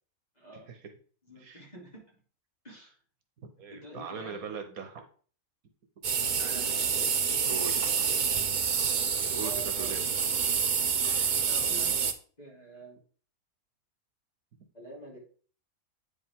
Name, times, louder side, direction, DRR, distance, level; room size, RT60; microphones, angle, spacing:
voice 1, 0.3-0.7 1.2-2.0 2.6-3.0 3.7-4.5 6.4-7.1 9.4-9.9 11.3-11.9 12.4-13.0 14.7-15.2, right 2 dB, 30° left, -4 dB, 3.1 m, -47 dB
voice 2, 1.4-1.7 3.6-5.0 7.4-8.3 9.3-10.0, right 5 dB, 75° right, 6 dB, 1.6 m, -40 dB
sound 1, 6.0-12.1, right 6 dB, 45° right, 0.6 m, -28 dB
8.9 x 5.2 x 3.7 m, 0.42 s
omnidirectional pair, 1.5 m